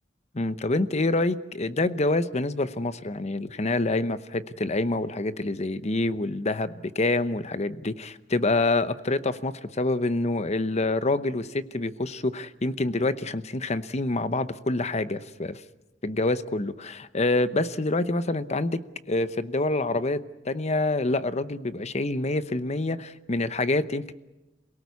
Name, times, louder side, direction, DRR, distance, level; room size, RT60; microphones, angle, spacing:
voice 1, 0.3-15.6 16.0-18.8 19.1-24.1, left 2 dB, 35° left, 13 dB, 0.9 m, -27 dB
28.0 x 18.0 x 8.3 m, 1.0 s
head